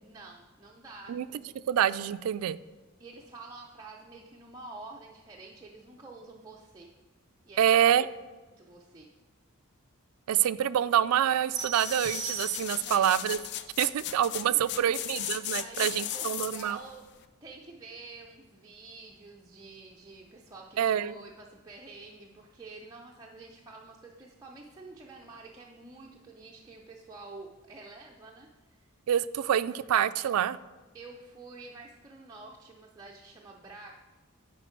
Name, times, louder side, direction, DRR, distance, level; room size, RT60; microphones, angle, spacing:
voice 1, 0.0-1.5 3.0-6.9 7.5-7.7 8.6-9.1 12.8-13.3 14.5-15.1 15.5-17.0 17.4-28.9 30.9-33.9, right 3 dB, 15° right, -2 dB, 0.5 m, -48 dB
voice 2, 1.7-2.6 7.6-8.1 10.3-13.4 13.8-16.8 20.8-21.2 29.1-30.6, right 10 dB, 75° right, 17 dB, 0.3 m, -26 dB
sound 1, 11.5-16.8 17.2-17.3, left 11 dB, 50° left, 0.4 m, -36 dB
sound 2, 11.6-13.1, right 8 dB, 15° left, 0.8 m, -39 dB
10.0 x 4.3 x 4.5 m, 1.3 s
head